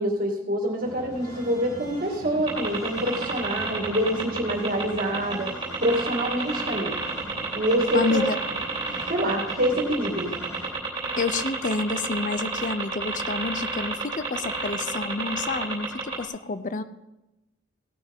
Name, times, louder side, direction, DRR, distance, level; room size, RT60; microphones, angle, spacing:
voice 1, 0.0-5.5 5.8-7.0 7.5-8.3 9.1-10.3, equal, 45° right, 2 dB, 2.2 m, -26 dB
sound 1, 0.8-10.7, equal, 20° left, 5.0 m, -42 dB
sound 2, 2.5-16.3, right 4 dB, 20° right, 3.4 m, -30 dB
voice 2, 7.9-8.4 11.2-16.8, left 3 dB, 40° left, 12 dB, 0.6 m, -29 dB
17.0 x 9.4 x 3.6 m, 0.98 s
head